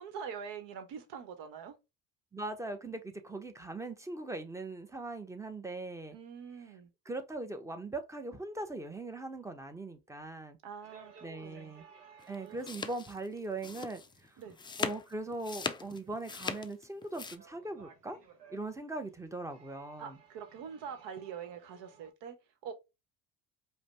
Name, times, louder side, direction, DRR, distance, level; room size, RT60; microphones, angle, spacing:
voice 1, 0.0-1.8 6.1-6.9 10.6-11.1 11.4-11.7 12.4-12.8 14.4-14.6 20.0-22.4 22.6-22.7, right 7 dB, 65° right, 1.1 m, -44 dB
voice 2, 2.3-6.2 7.1-10.6 11.2-11.9 12.3-14.4 14.8-18.2 18.5-20.2, right 2 dB, 5° right, 0.9 m, -40 dB
sound 1, 10.8-22.1, right 5 dB, 85° right, 1.1 m, -60 dB
sound 2, 12.2-17.4, left 5 dB, 10° left, 0.3 m, -39 dB
5.0 x 2.3 x 3.3 m
hypercardioid pair, 60°, 47 cm